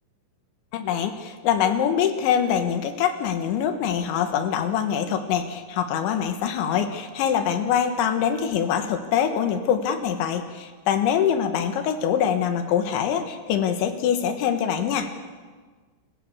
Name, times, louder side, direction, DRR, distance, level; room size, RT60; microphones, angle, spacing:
voice 1, 0.7-15.1, left 8 dB, 70° left, 8 dB, 3.5 m, -24 dB
28.0 x 15.5 x 7.0 m, 1.4 s
omnidirectional pair, 5.8 m